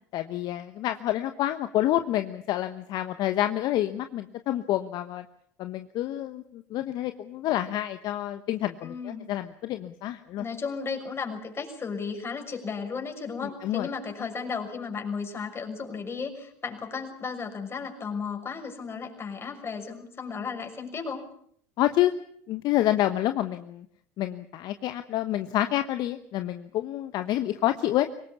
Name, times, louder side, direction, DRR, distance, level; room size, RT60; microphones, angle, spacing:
voice 1, 0.1-5.2 5.6-10.4 13.6-13.9 21.8-22.1 22.5-23.9 24.2-28.1, left 13 dB, 55° left, 10 dB, 1.1 m, -28 dB
voice 2, 8.8-9.3 10.4-21.3, left 5 dB, 30° left, 4 dB, 6.2 m, -34 dB
23.5 x 19.0 x 8.4 m, 0.64 s
hypercardioid pair, 80°, 8 cm